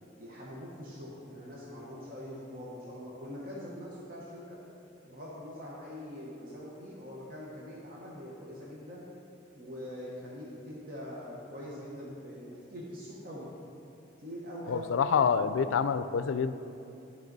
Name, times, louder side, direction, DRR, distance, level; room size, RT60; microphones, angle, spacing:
voice 1, 0.2-4.6 5.0-9.0 9.6-13.5 14.2-15.0, equal, 50° right, -5 dB, 1.1 m, -43 dB
voice 2, 14.7-16.5, left 6 dB, 90° left, 12 dB, 0.4 m, -27 dB
12.0 x 4.8 x 4.0 m, 2.8 s
head